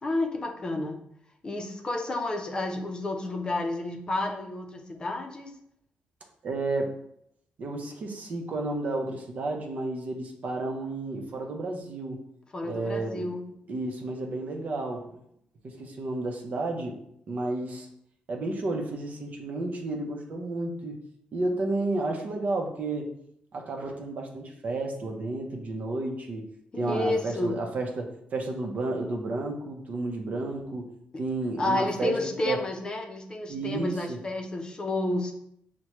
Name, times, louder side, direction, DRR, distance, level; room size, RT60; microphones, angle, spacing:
voice 1, 0.0-1.0 1.4-5.5 12.5-13.4 26.7-27.6 31.6-35.3, left 2 dB, 30° left, 2 dB, 0.6 m, -30 dB
voice 2, 6.4-6.9 7.6-12.2 12.6-13.3 13.7-15.1 15.6-17.0 17.3-17.9 18.3-21.0 21.3-23.1 23.5-26.4 26.8-30.9 31.2-32.2 32.4-32.6 33.5-34.2, right 2 dB, 55° right, 2 dB, 0.7 m, -31 dB
6.0 x 2.2 x 3.0 m, 0.73 s
cardioid pair, 115°, 3 cm